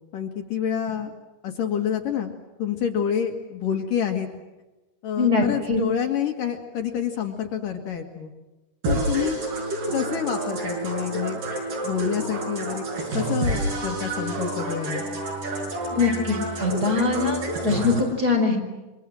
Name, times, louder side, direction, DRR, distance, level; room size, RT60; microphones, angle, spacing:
voice 1, 0.1-1.1 1.4-4.3 5.0-8.3 8.9-9.4 9.9-11.4 11.8-12.8 13.1-15.0, left 8 dB, 60° left, 4 dB, 3.2 m, -28 dB
voice 2, 5.2-5.8 15.9-18.6, left 4 dB, 20° right, 2 dB, 5.6 m, -22 dB
sound 1, 8.8-18.0, right 1 dB, 55° right, 8.1 m, -29 dB
28.0 x 25.0 x 7.7 m, 1.1 s
omnidirectional pair, 4.5 m